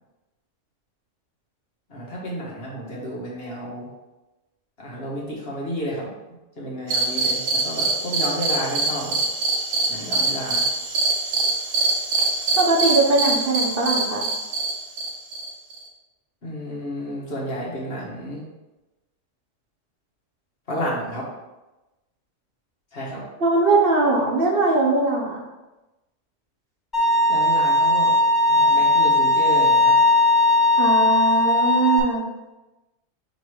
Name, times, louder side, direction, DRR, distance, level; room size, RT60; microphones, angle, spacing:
voice 1, 1.9-3.9 4.8-9.2 9.9-10.6 16.4-18.4 20.7-21.2 22.9-23.2 27.3-28.1 28.5-30.0, equal, 50° left, -4 dB, 1.7 m, -31 dB
sound 1, 6.9-15.9, right 3 dB, 75° right, 1.3 m, -24 dB
voice 2, 12.6-14.2 23.4-25.4 30.8-32.2, right 3 dB, 50° right, -2 dB, 1.1 m, -20 dB
Bowed string instrument, 26.9-32.0, left 2 dB, 20° left, 1.7 m, -18 dB
5.2 x 4.0 x 4.9 m, 1.0 s
omnidirectional pair, 1.3 m